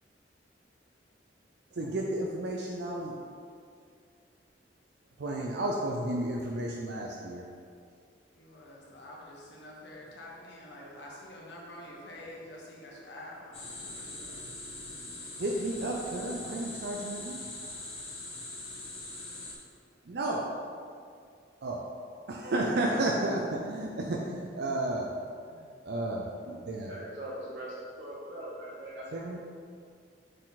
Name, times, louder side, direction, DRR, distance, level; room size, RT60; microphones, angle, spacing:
voice 1, 1.7-3.2 5.2-7.5 15.4-17.4 20.1-20.5 21.6-21.9 22.3-25.1 25.5-26.9 29.1-29.4, right 1 dB, 65° right, -1 dB, 0.5 m, -32 dB
voice 2, 8.4-14.4, left 1 dB, 70° left, -3 dB, 1.3 m, -47 dB
sound 1, 13.5-19.5, left 2 dB, 35° left, 1.3 m, -42 dB
voice 3, 26.9-29.4, right 1 dB, 90° right, -7 dB, 1.0 m, -41 dB
6.3 x 4.3 x 4.1 m, 2.3 s
head